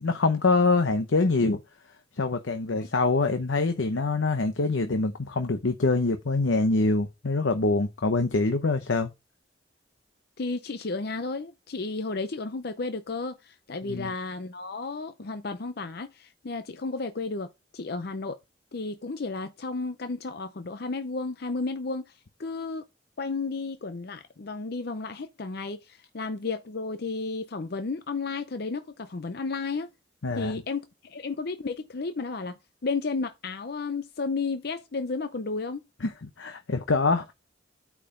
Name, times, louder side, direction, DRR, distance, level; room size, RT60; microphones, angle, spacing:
voice 1, 0.0-1.6 2.2-9.1 13.9-14.1 30.2-30.5 36.0-36.1 36.4-37.3, left 3 dB, 85° left, 0.8 m, -25 dB
voice 2, 10.4-17.5 17.7-18.4 18.7-22.1 22.4-22.8 23.2-29.9 30.3-35.8, left 3 dB, 55° left, 0.6 m, -33 dB
8.7 x 4.8 x 3.8 m
head